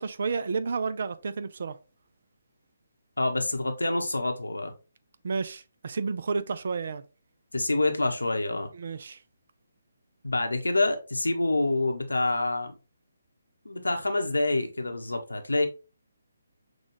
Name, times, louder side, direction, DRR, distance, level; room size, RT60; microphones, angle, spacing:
voice 1, 0.0-1.8 5.2-7.0 8.7-9.2, right 4 dB, 50° right, 0.4 m, -31 dB
voice 2, 3.2-4.7 7.5-8.7 10.2-12.7 13.6-15.7, left 2 dB, 75° left, 0.9 m, -27 dB
6.2 x 2.3 x 2.9 m
figure-of-eight pair, 140°, 0 cm